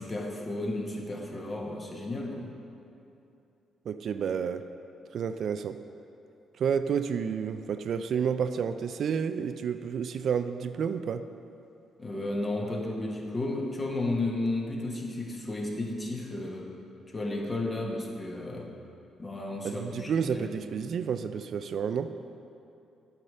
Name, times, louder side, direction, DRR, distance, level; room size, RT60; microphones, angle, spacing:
voice 1, 0.0-2.5 12.0-16.7 17.1-18.7 19.2-20.5, left 2 dB, 25° left, 0 dB, 1.4 m, -33 dB
voice 2, 3.9-4.6 5.1-5.8 6.6-11.3 19.6-22.1, right 7 dB, 60° right, 10 dB, 0.3 m, -30 dB
8.8 x 4.9 x 6.7 m, 2.8 s
cardioid pair, 85°, 0 cm